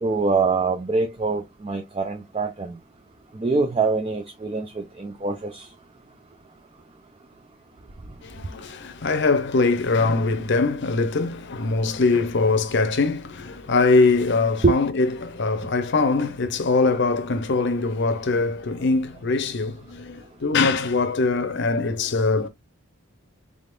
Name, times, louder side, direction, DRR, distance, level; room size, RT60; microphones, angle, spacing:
voice 1, 0.0-2.8 3.3-5.7 14.6-14.8, right 4 dB, 25° right, 0.4 m, -24 dB
voice 2, 8.2-22.5, left 3 dB, 55° left, 0.7 m, -22 dB
3.7 x 3.5 x 2.5 m
head